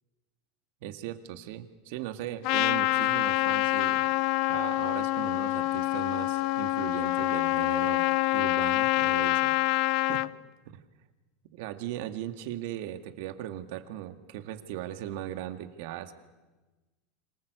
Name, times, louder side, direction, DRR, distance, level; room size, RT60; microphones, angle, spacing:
voice 1, 0.8-4.0 4.5-8.1 8.3-9.5 10.0-10.2 11.5-16.1, right 12 dB, 70° right, 9 dB, 1.9 m, -38 dB
Trumpet, 2.4-10.3, left 19 dB, 55° left, 0.7 m, -26 dB
26.5 x 19.0 x 8.1 m, 1.2 s
supercardioid pair, 135°, 0 cm